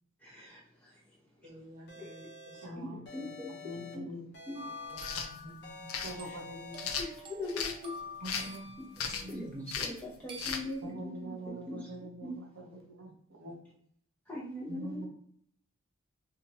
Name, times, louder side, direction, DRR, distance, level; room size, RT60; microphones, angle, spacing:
voice 1, 0.2-0.6 2.8-3.5 3.9-4.0 4.5-4.6 7.0-7.9 9.3-9.4 9.8-11.8 12.2-12.4 14.3-15.0, left 1 dB, 5° left, -5 dB, 0.6 m, -40 dB
voice 2, 1.4-2.8 3.2-3.3 4.9-5.5 6.0-6.2 8.3-8.5 9.0-9.3 13.4-13.5, equal, 40° right, -3 dB, 0.9 m, -54 dB
sound 1, 1.9-2.7 3.1-3.9 4.3-5.2 5.6-6.9, left 2 dB, 50° left, 0.7 m, -49 dB
voice 3, 2.6-4.3 5.3-6.9 8.2-9.8 10.8-13.6 14.7-15.0, right 1 dB, 75° right, 2 dB, 0.5 m, -45 dB
sound 2, 4.6-9.3 10.3-10.8, left 2 dB, 25° right, 0.3 m, -47 dB
sound 3, 4.9-5.3 5.9-6.1 6.8-7.8 8.2-8.6 9.0-9.3 9.7-10.0 10.4-10.6, left 6 dB, 85° left, 0.4 m, -36 dB
2.9 x 2.2 x 2.7 m, 0.65 s
head